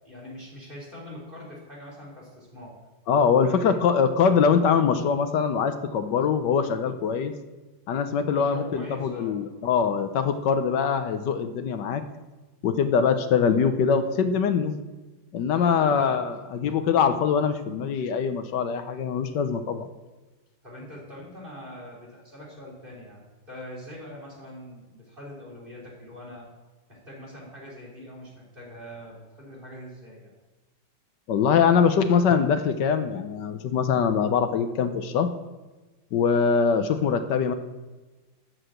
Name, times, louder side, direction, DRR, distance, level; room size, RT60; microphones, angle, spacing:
voice 1, 0.0-2.8 3.4-3.7 8.2-9.4 15.7-16.3 20.6-26.5 26.9-30.3, left 1 dB, 25° right, -4 dB, 3.3 m, -43 dB
voice 2, 3.1-7.3 7.9-12.0 12.6-14.7 15.3-19.9 31.3-35.3 36.1-37.5, left 6 dB, 65° left, 9 dB, 1.2 m, -23 dB
12.0 x 4.9 x 7.9 m, 1.2 s
omnidirectional pair, 2.3 m